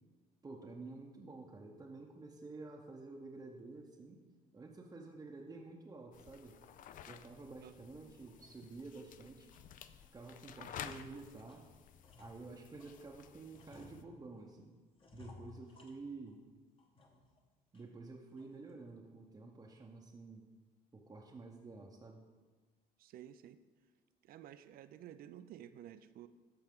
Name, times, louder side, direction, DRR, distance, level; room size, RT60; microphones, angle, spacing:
voice 1, 0.4-4.2 4.5-6.6 7.1-9.5 10.1-11.7 12.2-14.8 15.1-16.4 17.7-20.5 20.9-22.2, right 3 dB, 20° right, -1 dB, 0.8 m, -50 dB
sound 1, 6.1-14.0, left 9 dB, 50° left, 0.4 m, -53 dB
sound 2, 8.2-9.1 9.5-10.1 10.4-13.0 13.5-14.5 15.0-16.4 16.8-17.4 17.7-17.8 18.4-18.7, left 4 dB, 30° left, 1.2 m, -60 dB
voice 2, 23.0-23.6 24.2-26.3, right 11 dB, 60° right, 13 dB, 0.4 m, -53 dB
13.5 x 4.5 x 3.7 m, 1.3 s
cardioid pair, 110°, 17 cm